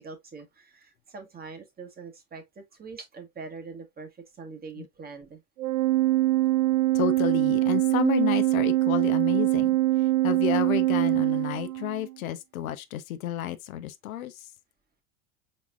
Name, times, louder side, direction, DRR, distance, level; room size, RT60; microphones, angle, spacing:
voice 1, 0.0-5.4, right 4 dB, 20° right, 1.4 m, -43 dB
Organ, 5.6-12.1, right 16 dB, 80° right, 0.6 m, -23 dB
voice 2, 6.9-14.5, left 12 dB, 70° left, 0.8 m, -31 dB
4.7 x 4.2 x 2.3 m
hypercardioid pair, 85°, 42 cm